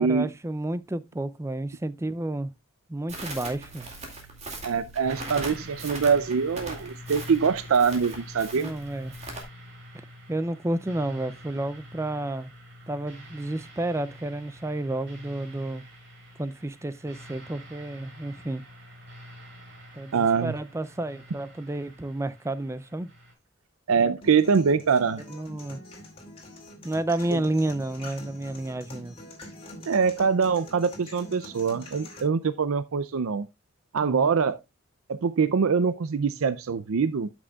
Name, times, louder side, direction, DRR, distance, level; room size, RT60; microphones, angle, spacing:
voice 1, 0.0-2.5 2.9-3.9 8.6-9.2 10.3-12.5 12.9-15.8 16.4-18.6 19.9-23.1 25.3-25.8 26.8-29.2 34.0-34.3, right 1 dB, 15° right, 0.4 m, -31 dB
Crackle, 3.1-9.4, right 2 dB, 30° right, 2.3 m, -40 dB
voice 2, 4.6-8.7 20.1-20.5 23.9-25.2 27.3-27.4 29.9-33.5 33.9-34.6 35.1-37.3, right 5 dB, 80° right, 0.5 m, -24 dB
sound 1, 5.0-23.3, equal, 55° right, 4.8 m, -46 dB
sound 2, 24.2-32.2, left 1 dB, 25° left, 2.5 m, -45 dB
12.5 x 6.2 x 2.3 m
head